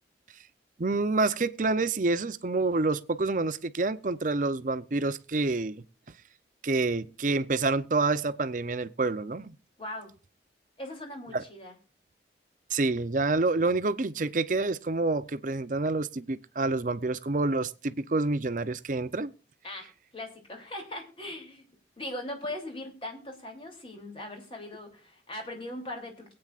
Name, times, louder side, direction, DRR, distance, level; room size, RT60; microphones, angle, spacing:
voice 1, 0.8-5.8 6.6-9.6 11.3-11.4 12.7-19.3, right 3 dB, 45° right, 0.6 m, -28 dB
voice 2, 9.8-10.1 10.8-11.7 19.6-21.6 22.0-26.3, left 1 dB, 30° left, 3.0 m, -40 dB
22.5 x 8.8 x 2.4 m
head